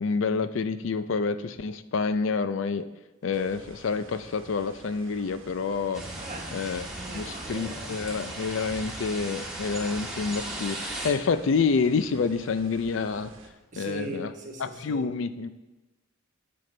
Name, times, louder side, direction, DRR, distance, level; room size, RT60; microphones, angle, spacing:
voice 1, 0.0-2.9 3.2-6.0 6.5-13.3 13.8-14.3 14.6-15.5, left 4 dB, 70° left, 0.4 m, -28 dB
sound 1, 3.3-13.5, right 2 dB, 75° right, 1.1 m, -50 dB
sound 2, 5.9-11.1, right 1 dB, 5° right, 1.5 m, -37 dB
voice 2, 6.2-6.7 6.9-8.0 13.7-15.1, right 1 dB, 40° right, 1.2 m, -40 dB
10.5 x 7.7 x 3.3 m
head